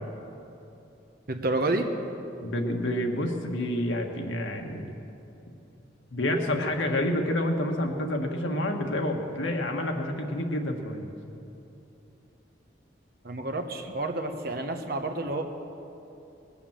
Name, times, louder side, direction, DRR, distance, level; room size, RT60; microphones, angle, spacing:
voice 1, 1.3-1.9 13.2-15.4, right 2 dB, 50° right, 5 dB, 1.0 m, -29 dB
voice 2, 2.4-4.9 6.1-11.1, left 1 dB, 85° left, 3 dB, 1.5 m, -28 dB
20.0 x 7.2 x 7.4 m, 2.9 s
head